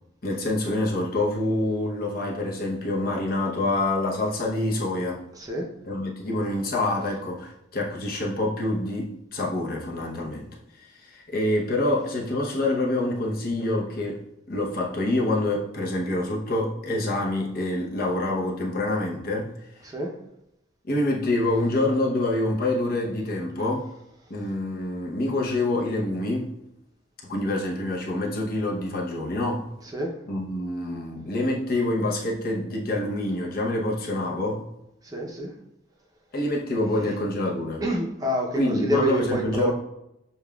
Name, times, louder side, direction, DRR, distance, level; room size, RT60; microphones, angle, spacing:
voice 1, 0.2-5.2 5.9-10.5 11.0-14.2 14.5-19.5 20.9-23.9 24.3-26.6 27.2-29.6 30.3-34.6 36.3-37.8 38.5-39.7, left 1 dB, 50° left, -2 dB, 0.8 m, -26 dB
voice 2, 35.0-35.5 36.9-37.1 37.8-39.7, right 1 dB, 20° right, -1 dB, 0.6 m, -27 dB
6.9 x 2.3 x 2.3 m, 0.84 s
head